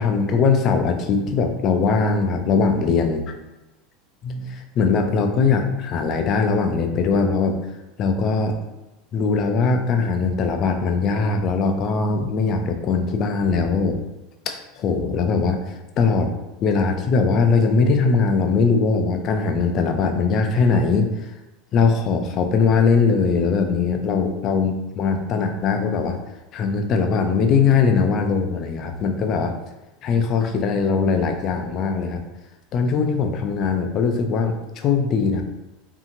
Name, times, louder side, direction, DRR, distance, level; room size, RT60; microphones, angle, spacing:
voice 1, 0.0-3.3 4.2-7.6 8.0-8.5 9.1-14.0 14.5-16.3 16.6-21.1 21.7-26.2 26.5-29.5 30.0-32.2 32.7-35.4, left 5 dB, 45° left, 5 dB, 0.4 m, -20 dB
2.7 x 2.5 x 2.5 m, 1.0 s
supercardioid pair, 105°, 0 cm